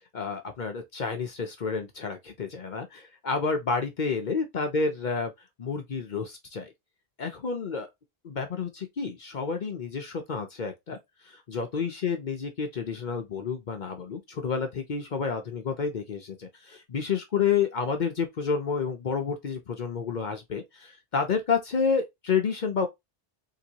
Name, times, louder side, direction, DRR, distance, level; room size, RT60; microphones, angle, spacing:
voice 1, 0.1-5.3 5.6-6.7 7.2-7.9 8.2-11.0 11.2-22.9, left 5 dB, 55° left, 0.7 m, -30 dB
3.9 x 2.6 x 2.8 m
omnidirectional pair, 1.0 m